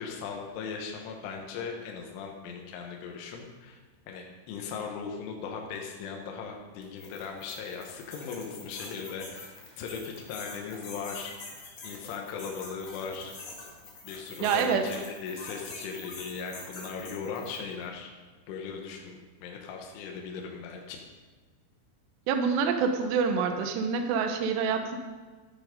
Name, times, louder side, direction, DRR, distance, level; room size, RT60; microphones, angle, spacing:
voice 1, 0.0-3.8 4.1-11.3 11.8-13.3 14.1-18.1 18.5-21.0, left 5 dB, 80° left, 1 dB, 3.6 m, -38 dB
sound 1, 6.8-17.8, left 3 dB, 45° left, 2.0 m, -45 dB
voice 2, 14.4-14.8 22.3-25.0, right 6 dB, 75° right, 5 dB, 2.8 m, -26 dB
12.5 x 9.8 x 5.2 m, 1.4 s
omnidirectional pair, 5.6 m